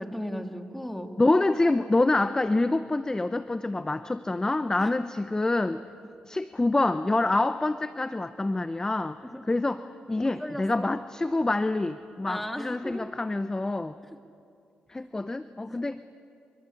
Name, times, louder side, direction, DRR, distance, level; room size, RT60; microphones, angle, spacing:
voice 1, 0.0-1.1 4.8-4.9 9.2-9.5 10.2-10.9 12.3-13.1 14.1-14.2 15.7-15.8, equal, 5° left, 4 dB, 2.5 m, -36 dB
voice 2, 1.2-5.8 6.3-9.2 9.5-13.9 14.9-16.0, left 2 dB, 20° left, 12 dB, 0.8 m, -26 dB
26.0 x 23.5 x 8.6 m, 2.5 s
cardioid pair, 60°, 3 cm